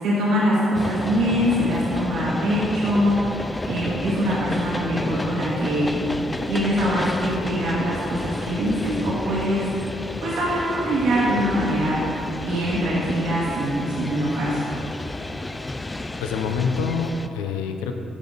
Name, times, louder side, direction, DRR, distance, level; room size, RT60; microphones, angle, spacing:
voice 1, 0.0-5.9 6.4-9.7 10.2-12.0 12.4-14.7, equal, 80° right, -8 dB, 1.7 m, -23 dB
sound 1, 0.7-17.3, left 2 dB, 20° left, 0.4 m, -31 dB
voice 2, 16.2-17.9, left 5 dB, 85° left, 6 dB, 0.5 m, -26 dB
13.5 x 5.2 x 4.0 m, 2.8 s
hypercardioid pair, 45°, 0 cm